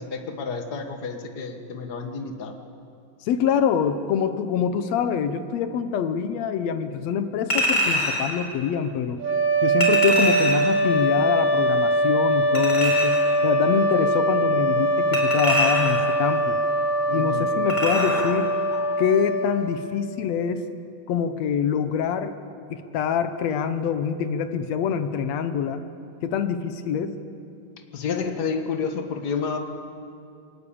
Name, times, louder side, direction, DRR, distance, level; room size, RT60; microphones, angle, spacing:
voice 1, 0.0-2.5 17.1-17.5 27.9-29.6, left 5 dB, 55° left, 5 dB, 1.1 m, -30 dB
voice 2, 3.2-9.2 9.6-13.1 13.4-16.6 17.1-18.5 19.0-20.6 21.1-22.3 22.7-25.8 26.2-27.1, left 7 dB, 70° left, 10 dB, 1.7 m, -25 dB
Chink clink, 7.5-8.3 9.8-10.7 12.6-13.3 15.1-16.1 17.7-18.3 18.7-18.8, left 1 dB, 30° left, 3.8 m, -24 dB
sound 1, 9.2-20.1, right 1 dB, 50° right, 4.4 m, -22 dB
22.0 x 19.0 x 8.6 m, 2.5 s
omnidirectional pair, 3.9 m